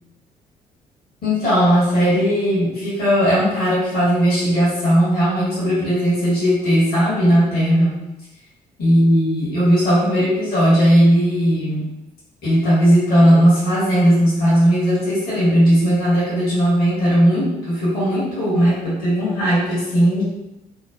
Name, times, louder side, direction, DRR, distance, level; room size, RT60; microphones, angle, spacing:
voice 1, 1.2-8.0 8.8-11.9 12.4-20.2, equal, 50° left, -9 dB, 1.3 m, -17 dB
3.1 x 2.1 x 2.3 m, 0.94 s
figure-of-eight pair, 45°, 21 cm